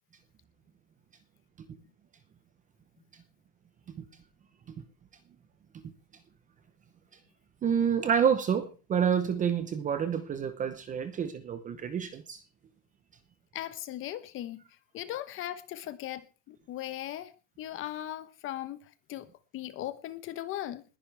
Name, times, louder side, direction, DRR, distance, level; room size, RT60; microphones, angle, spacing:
voice 1, 7.6-12.4, right 7 dB, 15° right, 0.8 m, -28 dB
voice 2, 13.5-14.6 14.9-17.3 17.6-19.3 19.5-20.8, left 13 dB, 25° left, 1.1 m, -38 dB
20.5 x 11.0 x 3.4 m
supercardioid pair, 155°, 49 cm